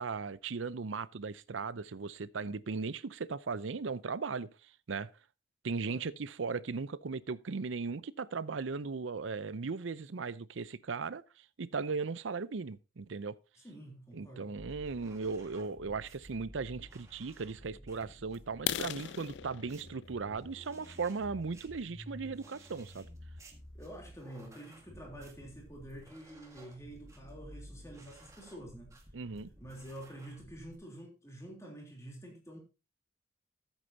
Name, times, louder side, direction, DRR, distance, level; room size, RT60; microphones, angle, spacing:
voice 1, 0.0-4.5 4.9-5.1 5.6-11.2 11.6-13.4 14.1-23.1 29.1-29.5, right 4 dB, 80° right, 0.6 m, -37 dB
voice 2, 13.6-14.6 23.7-29.0 29.6-32.6, right 1 dB, 15° left, 3.2 m, -48 dB
sound 1, 14.6-30.8, equal, 15° right, 1.7 m, -53 dB
sound 2, 18.5-22.3 22.8-23.0 23.5-23.6 24.0-24.2 24.5-24.6 25.0-25.1 25.4-25.9, left 10 dB, 70° left, 0.4 m, -40 dB
14.5 x 8.3 x 2.8 m
head